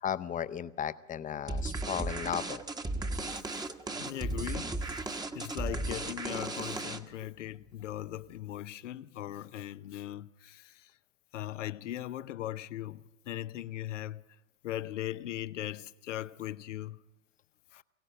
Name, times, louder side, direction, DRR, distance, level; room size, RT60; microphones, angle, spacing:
voice 1, 0.0-2.6, left 9 dB, 20° left, 0.8 m, -35 dB
sound 1, 1.5-7.2, right 2 dB, 10° right, 1.2 m, -35 dB
voice 2, 3.9-4.8 5.3-10.9 11.3-14.2 14.6-17.0 17.7-17.8, left 13 dB, 75° left, 0.8 m, -39 dB
23.0 x 16.5 x 7.8 m
hypercardioid pair, 90°, 37 cm